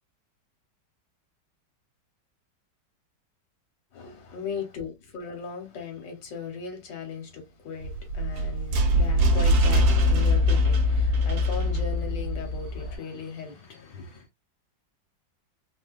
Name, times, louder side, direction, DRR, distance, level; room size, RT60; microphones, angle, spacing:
voice 1, 3.9-14.3, left 6 dB, 80° left, 1.7 m, -37 dB
sound 1, 7.8-13.0, left 1 dB, 90° right, 1.5 m, -22 dB
3.8 x 2.2 x 2.4 m
omnidirectional pair, 1.9 m